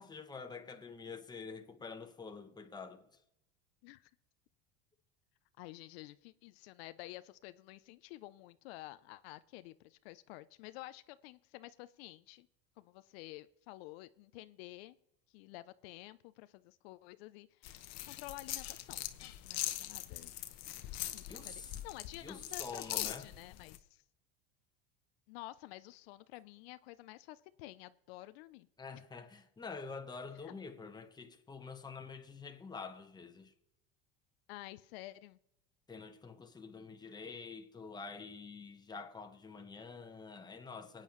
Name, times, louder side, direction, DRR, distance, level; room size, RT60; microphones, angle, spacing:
voice 1, 0.0-3.1 21.3-21.8 22.2-23.3 28.8-33.5 35.9-41.0, left 4 dB, 15° left, 1.2 m, -47 dB
voice 2, 5.6-12.5 12.8-15.0 15.3-20.3 21.1-24.0 25.3-28.7 30.4-30.6 34.5-35.4, left 17 dB, 80° left, 0.5 m, -51 dB
sound 1, 17.6-23.8, left 14 dB, 55° left, 0.9 m, -42 dB
24.5 x 9.0 x 3.1 m
supercardioid pair, 120°, 30 cm